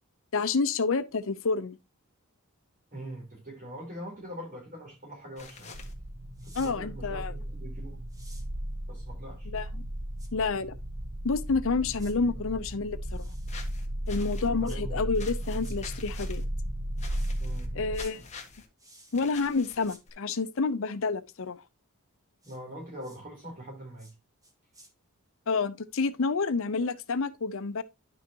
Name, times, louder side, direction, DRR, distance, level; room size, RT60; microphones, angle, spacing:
voice 1, 0.3-1.8 6.5-7.3 9.5-9.9 10.3-10.7 11.2-13.3 14.1-16.4 17.7-18.2 19.1-21.6 25.5-27.8, left 4 dB, 65° left, 0.6 m, -29 dB
voice 2, 2.9-5.8 6.4-8.0 8.9-9.5 12.2-12.3 14.5-15.1 17.4-17.7 22.4-24.1, right 1 dB, 40° right, 4.1 m, -42 dB
sound 1, 5.4-5.9 13.5-14.5 15.1-16.4 17.0-17.7 17.9-18.7 19.1-20.1, left 5 dB, 30° left, 1.5 m, -47 dB
sound 2, 5.7-18.0, equal, 55° right, 1.1 m, -35 dB
sound 3, 6.3-6.7 8.1-8.5 10.2-10.3 12.0-12.1 13.0-13.7 14.6-14.8 15.6-15.8 17.1-17.3 17.9-18.1 18.8-19.3 19.8-20.0 22.4-22.6 23.0-23.2 24.0-24.1 24.4-24.9, right 1 dB, 15° right, 1.5 m, -53 dB
10.5 x 6.4 x 2.8 m
head